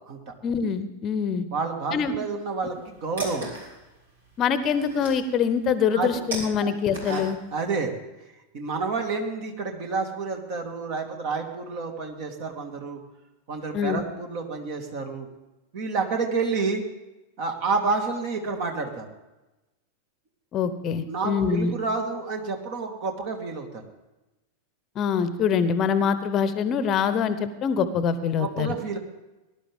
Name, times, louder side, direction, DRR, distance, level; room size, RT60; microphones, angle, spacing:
voice 1, 0.4-1.4 1.9-2.2 4.4-7.4 13.7-14.0 20.5-21.7 25.0-28.8, left 6 dB, 30° left, 12 dB, 0.9 m, -24 dB
voice 2, 1.5-3.5 5.9-6.2 6.6-6.7 7.0-7.3 7.5-7.9 8.5-13.0 13.5-15.3 15.7-16.8 17.4-19.1 21.1-23.8 26.9-27.0 28.4-29.0, right 4 dB, 45° right, 4 dB, 2.3 m, -29 dB
sound 1, 2.6-7.6, right 2 dB, 70° right, 4.4 m, -37 dB
19.0 x 11.5 x 3.7 m, 1.0 s
figure-of-eight pair, 90°, 0 cm